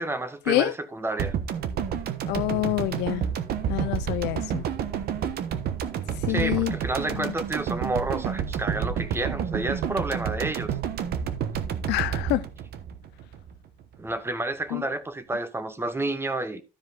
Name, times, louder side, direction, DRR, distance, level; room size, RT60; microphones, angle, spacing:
voice 1, 0.0-1.3 6.3-10.7 14.0-16.6, right 2 dB, 15° right, 1.1 m, -30 dB
sound 1, 1.2-13.5 13.8-13.9, right 8 dB, 65° right, 1.2 m, -30 dB
voice 2, 2.3-3.2 3.7-4.6 6.3-6.7 7.1-7.3 11.9-12.4 14.7-14.8, left 18 dB, 90° left, 0.6 m, -26 dB
13.0 x 5.0 x 3.8 m
cardioid pair, 110°, 17 cm